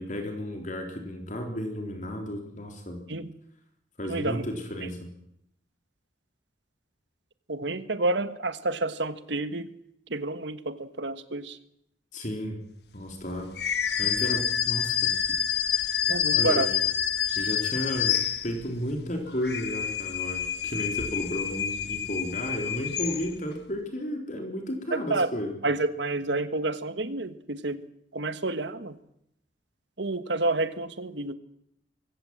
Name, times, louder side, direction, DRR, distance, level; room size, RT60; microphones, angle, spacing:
voice 1, 0.0-3.0 4.0-5.1 12.1-12.6 12.9-15.4 16.3-16.8 17.3-25.6, left 1 dB, 40° left, 3 dB, 3.8 m, -33 dB
voice 2, 4.1-4.4 4.8-4.9 7.5-9.8 10.1-11.6 16.1-16.7 24.9-25.3 25.6-27.8 28.1-29.0 30.0-31.3, right 2 dB, 70° right, 12 dB, 1.4 m, -29 dB
sound 1, 13.5-18.8 19.3-23.5, left 8 dB, 60° left, 1.5 m, -28 dB
23.5 x 16.0 x 7.8 m, 0.75 s
head